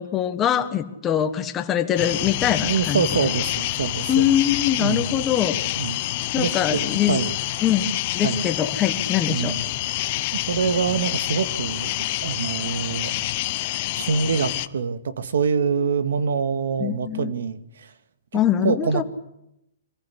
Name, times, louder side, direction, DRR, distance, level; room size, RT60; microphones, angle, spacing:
voice 1, 0.0-3.1 4.1-5.6 6.3-7.2 7.6-7.9 8.1-9.5 16.8-17.3 18.3-19.0, left 10 dB, 15° left, 8 dB, 1.5 m, -23 dB
sound 1, 2.0-14.7, left 16 dB, 30° left, 0.8 m, -27 dB
voice 2, 2.6-4.3 4.8-5.1 5.8-6.0 6.4-7.3 8.2-8.5 9.3-9.6 10.5-11.9 12.2-13.1 13.9-17.9 18.6-19.0, right 6 dB, 80° right, 11 dB, 2.1 m, -25 dB
25.0 x 15.5 x 10.0 m, 0.81 s
hypercardioid pair, 175°, 0 cm